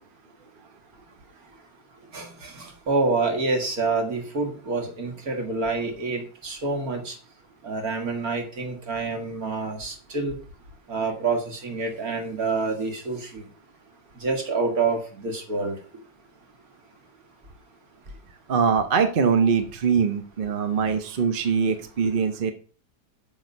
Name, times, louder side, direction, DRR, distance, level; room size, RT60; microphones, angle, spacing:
voice 1, 2.1-7.2 7.6-10.4 10.9-13.5 14.2-15.8, right 3 dB, 60° right, 3 dB, 2.2 m, -27 dB
voice 2, 18.5-22.5, right 6 dB, 40° right, 7 dB, 0.8 m, -22 dB
7.2 x 6.0 x 5.3 m, 0.39 s
omnidirectional pair, 1.8 m